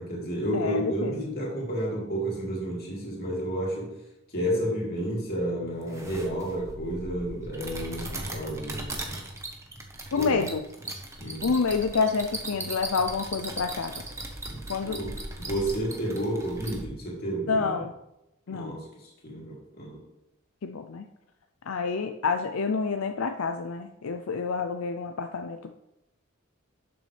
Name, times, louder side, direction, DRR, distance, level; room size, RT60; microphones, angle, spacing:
voice 1, 0.0-4.0 4.3-9.2 10.2-10.4 11.2-11.5 14.4-17.7 18.5-20.0, right 1 dB, 45° left, -3 dB, 2.9 m, -31 dB
voice 2, 0.5-1.1 10.1-10.7 11.4-14.0 14.7-15.0 17.5-17.9 18.5-18.8 20.6-21.0 21.7-25.7, left 5 dB, 80° left, 6 dB, 0.5 m, -28 dB
sound 1, 5.8-16.8, right 2 dB, 15° right, 1.1 m, -38 dB
11.5 x 7.0 x 3.4 m, 0.88 s
head